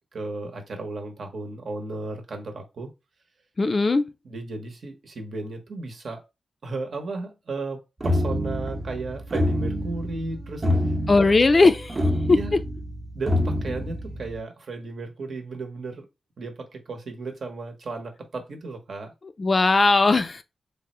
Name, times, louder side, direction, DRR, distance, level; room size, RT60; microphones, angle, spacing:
voice 1, 0.1-2.9 4.2-6.2 6.6-10.9 11.3-11.4 12.3-12.6 13.1-16.1 16.4-19.1, right 3 dB, 65° right, 0.9 m, -34 dB
voice 2, 3.6-4.1 11.1-12.0 12.3-12.4 19.4-20.4, left 3 dB, 40° left, 0.4 m, -18 dB
sound 1, 8.0-14.4, left 1 dB, 35° right, 0.7 m, -27 dB
3.4 x 2.1 x 4.2 m
wide cardioid pair, 90°, 0 cm